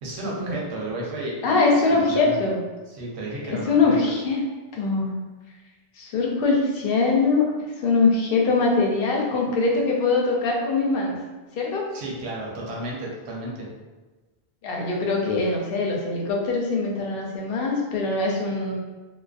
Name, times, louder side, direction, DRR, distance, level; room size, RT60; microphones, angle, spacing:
voice 1, 0.0-2.5 2.9-4.0 11.9-13.7, right 1 dB, 85° right, -3 dB, 0.9 m, -33 dB
voice 2, 1.4-2.6 3.5-4.4 4.7-5.1 6.0-7.4 7.8-11.2 11.6-11.9 14.6-18.8, left 3 dB, 65° left, -1 dB, 0.7 m, -22 dB
2.4 x 2.2 x 2.4 m, 1.2 s
omnidirectional pair, 1.1 m